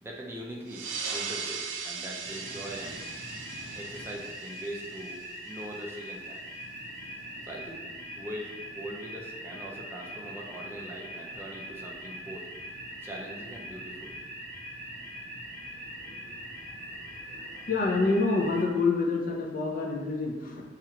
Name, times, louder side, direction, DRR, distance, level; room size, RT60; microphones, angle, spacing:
voice 1, 0.0-3.0 3.7-5.2 5.4-6.4 7.4-7.8 8.1-12.5 13.0-14.2, equal, 10° right, -2 dB, 0.4 m, -41 dB
sound 1, 0.7-5.7, right 5 dB, 75° right, 0.4 m, -39 dB
sound 2, 2.2-18.6, equal, 85° left, 0.8 m, -42 dB
voice 2, 17.7-20.6, left 3 dB, 45° left, -1 dB, 0.5 m, -27 dB
4.4 x 2.4 x 2.8 m, 1.3 s
head